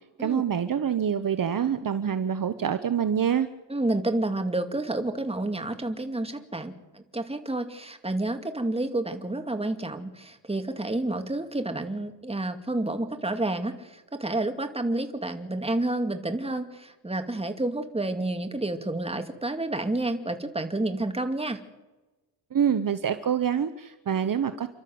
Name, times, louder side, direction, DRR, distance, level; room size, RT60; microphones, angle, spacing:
voice 1, 0.2-3.5 22.5-24.7, right 8 dB, 45° right, 10 dB, 1.1 m, -26 dB
voice 2, 3.7-21.6, right 2 dB, 15° right, 6 dB, 2.3 m, -30 dB
29.5 x 12.5 x 7.9 m, 1.1 s
cardioid pair, 95°, 46 cm